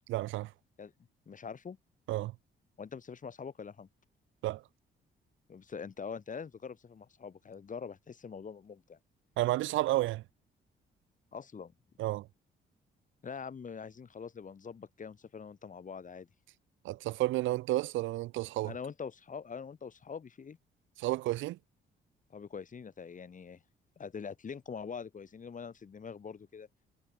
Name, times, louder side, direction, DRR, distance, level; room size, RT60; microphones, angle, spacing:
voice 1, 0.1-0.5 2.1-2.4 4.4-4.6 9.4-10.2 12.0-12.3 16.8-18.7 21.0-21.6, right 17 dB, 75° right, 0.4 m, -31 dB
voice 2, 1.3-1.8 2.8-3.9 5.5-9.0 11.3-11.7 13.2-16.3 18.6-20.6 22.3-23.6 24.0-26.7, left 6 dB, 40° left, 3.4 m, -44 dB
cardioid pair, 90°, 20 cm